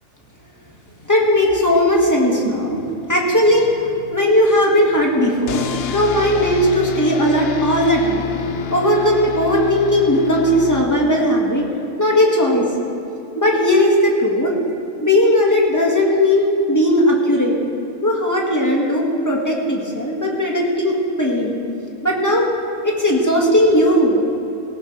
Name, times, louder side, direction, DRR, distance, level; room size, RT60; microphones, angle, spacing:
voice 1, 1.1-2.8 3.1-8.2 8.7-11.7 12.0-12.6 13.4-14.6 15.0-17.6 18.0-21.6 22.0-22.5 22.8-24.2, left 1 dB, 15° left, -2 dB, 2.0 m, -17 dB
sound 1, 5.5-11.3, left 8 dB, 55° left, 0.8 m, -28 dB
18.0 x 15.5 x 3.4 m, 2.7 s
omnidirectional pair, 1.4 m